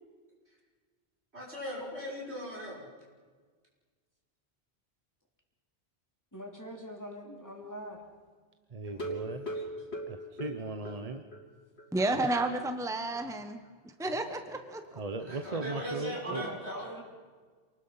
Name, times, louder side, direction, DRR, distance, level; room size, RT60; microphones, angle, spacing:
voice 1, 1.3-2.8 8.8-9.8 13.3-13.4 14.0-14.3 15.2-16.9, equal, 85° right, -4 dB, 6.4 m, -40 dB
voice 2, 6.3-8.0 16.2-17.0, equal, 15° left, 1 dB, 3.2 m, -42 dB
voice 3, 8.7-9.5 10.1-11.2 15.0-16.4, right 2 dB, 40° right, 7 dB, 1.0 m, -37 dB
sound 1, 8.9-11.5 11.8-11.9 12.2-12.3 12.7-12.8, right 1 dB, 80° left, 3.5 m, -39 dB
voice 4, 11.9-13.6 14.0-15.0, right 2 dB, 5° right, 7 dB, 1.1 m, -31 dB
28.0 x 20.0 x 5.7 m, 1.5 s
omnidirectional pair, 1.1 m